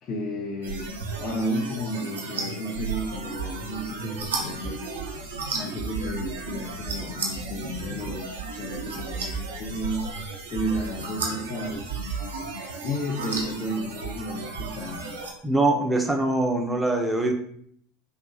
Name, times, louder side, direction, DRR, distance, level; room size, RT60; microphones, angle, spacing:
voice 1, 0.0-5.0 5.6-10.0 10.5-11.9 12.8-15.1, equal, 35° left, -3 dB, 0.6 m, -32 dB
sound 1, 0.6-15.3, right 4 dB, 80° right, 0.6 m, -34 dB
voice 2, 15.4-17.3, right 2 dB, 15° right, 4 dB, 0.5 m, -23 dB
3.3 x 2.9 x 2.6 m, 0.64 s
figure-of-eight pair, 80°, 0 cm